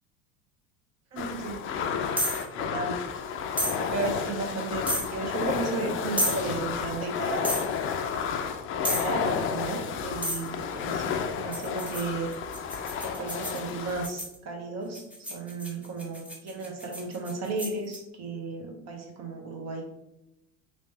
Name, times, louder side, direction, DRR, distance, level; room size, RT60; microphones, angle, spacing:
voice 1, 1.1-1.6 2.6-2.9 3.8-7.6 8.7-12.3 13.0-19.8, right 3 dB, 40° right, 1 dB, 1.1 m, -34 dB
sound 1, 1.2-14.1, left 6 dB, 35° left, 0.4 m, -31 dB
sound 2, 2.2-2.4 3.6-3.8 4.9-5.1 6.2-6.4 7.4-7.7 8.8-9.1 10.2-10.5 11.5-14.4 14.9-18.0, equal, 5° right, 0.8 m, -31 dB
3.0 x 2.9 x 3.3 m, 0.89 s
hypercardioid pair, 80°, 39 cm